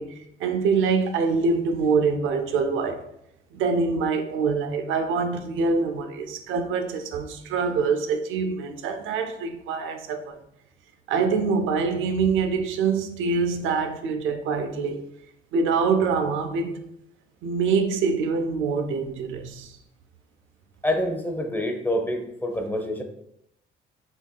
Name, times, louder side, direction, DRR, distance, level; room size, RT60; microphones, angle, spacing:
voice 1, 0.0-3.0 3.5-10.4 11.1-15.0 15.5-16.8 17.4-19.8, right 5 dB, 85° right, 0.5 m, -25 dB
voice 2, 20.8-23.0, left 1 dB, 10° left, 0.6 m, -26 dB
5.9 x 2.7 x 2.2 m
cardioid pair, 90°, 20 cm